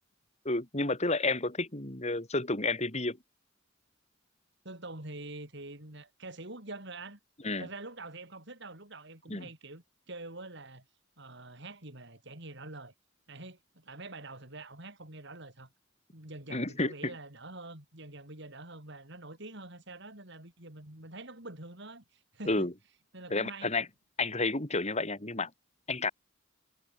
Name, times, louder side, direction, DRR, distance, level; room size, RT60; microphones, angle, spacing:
voice 1, 0.5-3.2 7.4-7.7 9.3-9.5 16.5-17.1 22.5-22.7 23.3-23.9 24.2-25.5 25.9-26.1, left 2 dB, 35° left, 3.9 m, -31 dB
voice 2, 4.6-7.2 7.6-10.8 11.2-12.9 13.3-15.7 16.1-22.7 23.1-23.7, right 2 dB, 60° right, 6.1 m, -45 dB
head